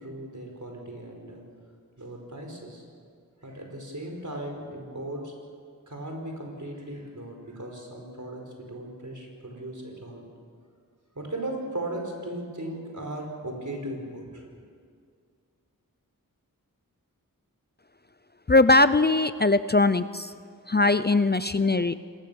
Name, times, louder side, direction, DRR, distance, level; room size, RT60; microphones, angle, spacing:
voice 1, 0.0-1.4 2.0-2.8 3.4-5.3 5.9-10.2 11.1-14.6, right 1 dB, 60° right, 2 dB, 5.1 m, -37 dB
voice 2, 18.5-20.3 20.7-21.9, left 2 dB, 30° left, 13 dB, 0.6 m, -20 dB
25.5 x 20.0 x 7.1 m, 2.1 s
wide cardioid pair, 50°, 34 cm